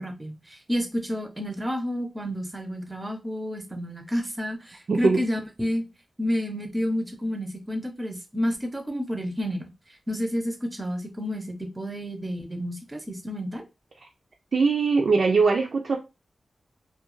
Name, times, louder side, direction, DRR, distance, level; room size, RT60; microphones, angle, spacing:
voice 1, 0.0-5.9 6.2-9.7 10.1-13.6, equal, 15° right, 0.6 m, -30 dB
voice 2, 4.9-5.2 14.5-16.0, right 4 dB, 65° right, 0.4 m, -21 dB
2.3 x 2.2 x 3.0 m
wide cardioid pair, 95°, 0 cm